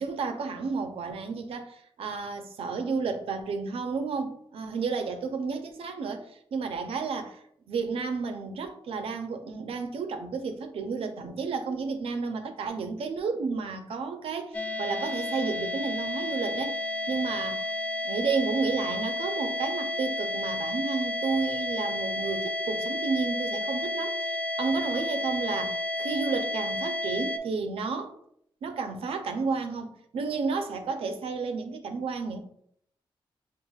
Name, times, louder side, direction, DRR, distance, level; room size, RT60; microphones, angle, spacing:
voice 1, 0.0-16.8 17.1-17.7 18.0-28.1 28.6-32.4, right 4 dB, 85° right, 0.5 m, -32 dB
sound 1, 14.5-27.4, left 1 dB, 15° left, 0.3 m, -31 dB
5.4 x 2.4 x 2.3 m
wide cardioid pair, 100°, 10 cm